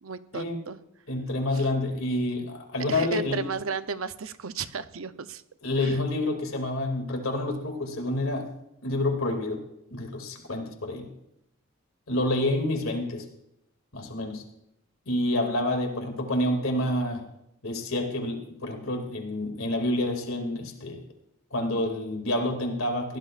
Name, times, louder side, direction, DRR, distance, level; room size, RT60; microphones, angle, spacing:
voice 1, 0.0-0.8 1.5-1.6 2.9-5.4 5.8-6.0, right 5 dB, 75° right, 11 dB, 0.7 m, -34 dB
voice 2, 1.1-3.4 5.6-8.5 8.8-11.1 12.1-13.2 13.9-14.4 15.1-17.3 17.6-21.0 21.5-23.2, left 1 dB, 75° left, 3 dB, 2.5 m, -28 dB
21.5 x 17.0 x 2.5 m, 0.82 s
head